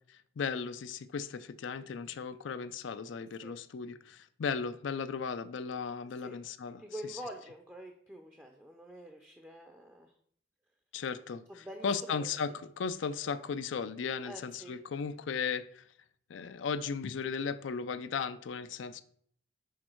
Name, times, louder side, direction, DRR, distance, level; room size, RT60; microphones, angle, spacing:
voice 1, 0.4-6.8 7.1-7.2 10.9-15.8 16.3-19.0, left 5 dB, 85° left, 0.4 m, -36 dB
voice 2, 6.8-10.1 11.5-12.4 14.2-14.8, right 1 dB, 10° right, 0.5 m, -46 dB
6.4 x 4.5 x 4.4 m
head